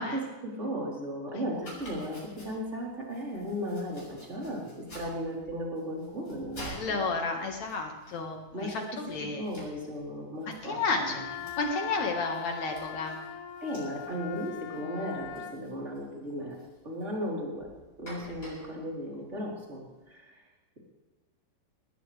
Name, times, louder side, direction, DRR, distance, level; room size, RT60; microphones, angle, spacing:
voice 1, 0.0-7.0 8.5-8.8 9.4-11.1 13.6-16.6 16.8-17.7 18.0-20.3, equal, 15° right, -3 dB, 3.7 m, -36 dB
Domestic sounds home sounds, 1.5-20.0, right 1 dB, 15° left, 7.5 m, -51 dB
voice 2, 6.7-9.5 10.6-13.2, left 3 dB, 55° left, 2 dB, 2.2 m, -32 dB
Wind instrument woodwind instrument, 11.0-15.6, left 9 dB, 80° left, 2.3 m, -41 dB
19.5 x 19.5 x 3.5 m, 1.2 s
omnidirectional pair, 5.6 m